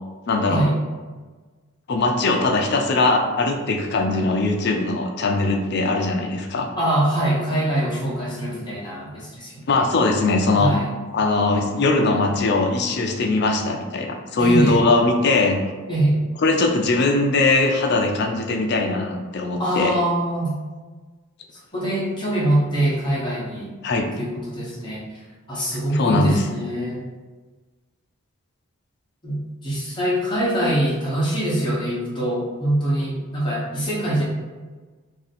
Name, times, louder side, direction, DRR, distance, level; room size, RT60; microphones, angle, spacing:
voice 1, 0.3-0.6 1.9-6.7 9.7-10.7 11.1-15.6 16.4-19.9 23.8-24.1 25.9-26.4, left 3 dB, 50° left, 3 dB, 0.4 m, -20 dB
voice 2, 6.7-9.8 10.6-10.9 14.4-14.8 15.9-16.2 19.6-20.5 21.7-23.7 24.2-25.2 25.5-27.0 29.2-34.2, right 1 dB, 20° left, -7 dB, 0.9 m, -23 dB
2.7 x 2.6 x 4.0 m, 1.4 s
head